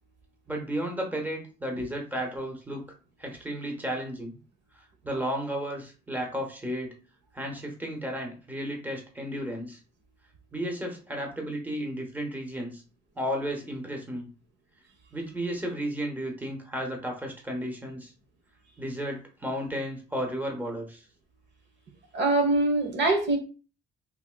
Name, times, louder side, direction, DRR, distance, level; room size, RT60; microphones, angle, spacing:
voice 1, 0.5-2.9 3.2-4.4 5.0-6.9 7.3-9.8 10.5-12.8 13.2-14.3 15.1-18.1 18.8-21.1, equal, 10° right, 1 dB, 0.9 m, -33 dB
voice 2, 22.1-23.4, right 2 dB, 65° right, 3 dB, 1.0 m, -23 dB
3.5 x 2.7 x 2.2 m, 0.36 s
cardioid pair, 90°, 20 cm